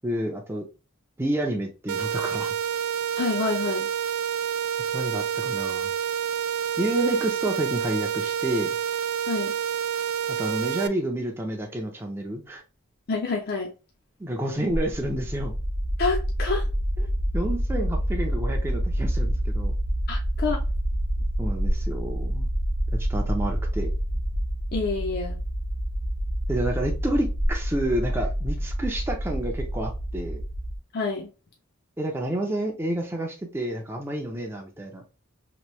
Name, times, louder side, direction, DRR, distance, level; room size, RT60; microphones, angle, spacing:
voice 1, 0.0-0.7 1.2-2.5 4.9-5.9 6.8-8.8 10.4-12.6 14.2-15.5 17.0-17.1 17.3-19.7 21.4-22.5 22.9-23.9 26.5-30.4 32.0-35.0, right 1 dB, 10° right, 1 dB, 0.4 m, -29 dB
sound 1, 1.9-10.9, right 9 dB, 80° right, 0.3 m, -28 dB
voice 2, 3.2-3.9 9.3-9.5 13.1-13.7 16.0-16.7 20.1-20.6 24.7-25.4 30.9-31.3, left 4 dB, 50° left, 1 dB, 0.5 m, -27 dB
sound 2, 14.7-30.8, equal, 40° right, 0.9 m, -27 dB
2.9 x 2.6 x 3.1 m, 0.31 s
head